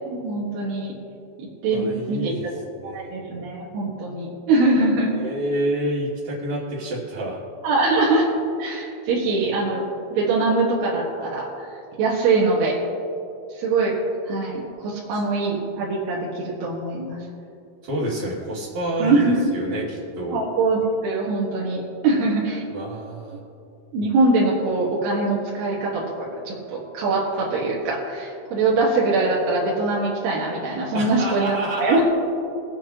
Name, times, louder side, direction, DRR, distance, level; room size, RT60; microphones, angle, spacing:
voice 1, 0.2-0.9 1.4-2.3 2.8-5.1 7.6-8.3 8.6-9.8 10.1-11.7 12.0-12.8 13.6-14.0 14.3-17.2 19.0-19.4 20.3-22.6 23.9-32.0, right 3 dB, 75° right, -5 dB, 3.5 m, -22 dB
voice 2, 1.7-2.4 2.8-3.1 5.1-7.4 15.1-15.2 17.8-20.4 22.7-23.4 30.9-32.0, right 1 dB, 50° right, -11 dB, 3.3 m, -28 dB
24.0 x 8.6 x 3.0 m, 2.7 s
omnidirectional pair, 4.7 m